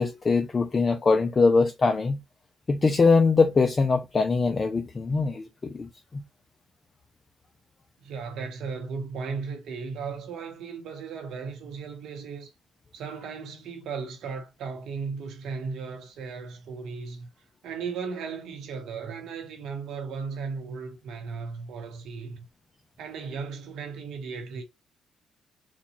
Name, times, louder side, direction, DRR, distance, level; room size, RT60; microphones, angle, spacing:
voice 1, 0.0-2.2 2.7-6.2, left 4 dB, 35° left, 0.5 m, -22 dB
voice 2, 8.0-12.5 12.9-17.3 17.6-22.4 23.0-24.6, right 5 dB, 80° right, 1.1 m, -36 dB
4.1 x 2.3 x 2.9 m
cardioid pair, 90°, 0 cm